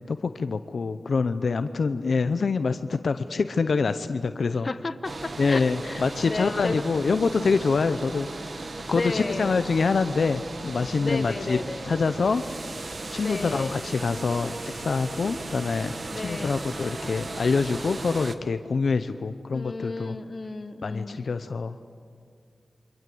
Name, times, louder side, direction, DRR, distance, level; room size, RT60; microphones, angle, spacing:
voice 1, 0.0-4.7 5.4-8.3 8.9-11.6 11.8-12.4 13.1-15.9 16.2-20.1 20.8-21.9, left 4 dB, 70° left, 10 dB, 0.7 m, -25 dB
voice 2, 4.5-6.8 8.8-9.6 11.0-11.8 13.2-13.8 16.1-16.7 19.5-21.2, left 3 dB, 45° left, 11 dB, 1.1 m, -33 dB
sound 1, 5.0-18.4, right 2 dB, 50° right, 1.5 m, -37 dB
29.0 x 25.0 x 7.9 m, 2.3 s
wide cardioid pair, 70°, 0 cm